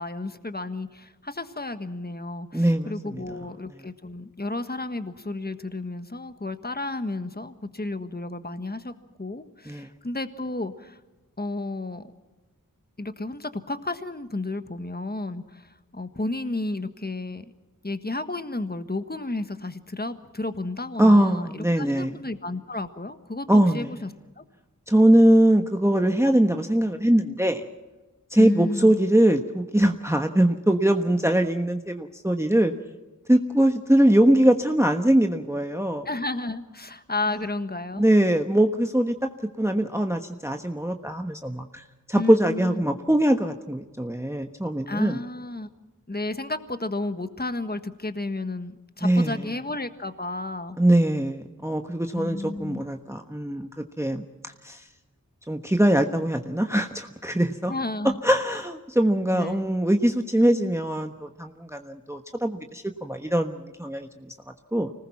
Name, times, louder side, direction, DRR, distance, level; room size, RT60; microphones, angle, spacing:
voice 1, 0.0-8.9 9.2-11.0 11.4-12.1 13.0-17.4 17.8-24.1 24.4-24.5 28.4-29.0 36.0-38.1 42.1-42.8 44.9-45.7 46.1-50.8 52.1-52.8 57.7-58.2 59.3-59.7, left 2 dB, 30° left, 9 dB, 1.5 m, -32 dB
voice 2, 2.5-3.2 9.7-9.9 21.0-22.1 23.5-23.9 24.9-27.6 28.3-32.7 33.3-36.1 38.0-39.1 39.6-45.2 49.0-49.4 50.8-53.7 54.0-54.8 55.5-57.7 58.2-64.3 64.7-64.9, right 1 dB, 10° right, 5 dB, 1.2 m, -22 dB
25.5 x 19.5 x 5.9 m, 1.1 s
wide cardioid pair, 45°, 33 cm